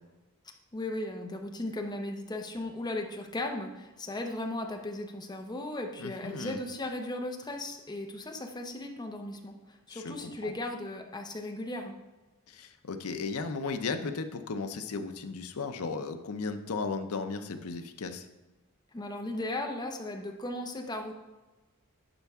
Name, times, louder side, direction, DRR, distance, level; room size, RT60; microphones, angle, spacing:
voice 1, 0.7-12.0 18.9-21.1, left 1 dB, 20° left, 3 dB, 0.8 m, -36 dB
voice 2, 6.0-6.6 9.9-10.5 12.5-18.3, left 4 dB, 75° left, 7 dB, 0.6 m, -35 dB
11.0 x 4.5 x 3.6 m, 1.1 s
head